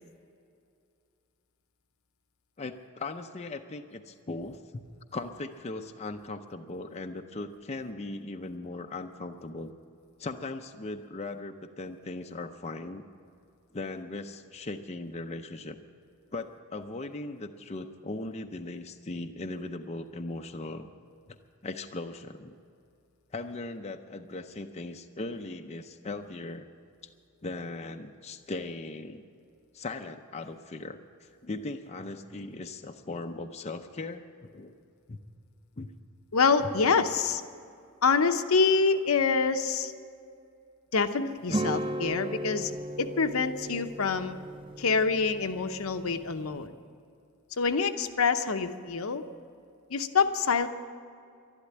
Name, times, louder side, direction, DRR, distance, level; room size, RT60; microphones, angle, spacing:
voice 1, 2.6-4.8 5.1-9.7 10.2-13.1 13.7-15.8 16.3-20.9 21.3-21.4 21.6-22.5 23.3-26.7 27.4-29.2 29.7-34.7 35.1-35.2 35.8-35.9, left 2 dB, 30° left, 5 dB, 0.6 m, -38 dB
voice 2, 36.3-37.4 38.0-39.9 40.9-42.7 43.0-44.4 44.8-46.7 47.6-49.2 49.9-50.7, left 5 dB, 65° left, 8 dB, 0.8 m, -26 dB
sound 1, 41.5-46.7, right 1 dB, 25° right, 0.3 m, -36 dB
12.0 x 11.5 x 9.1 m, 2.4 s
head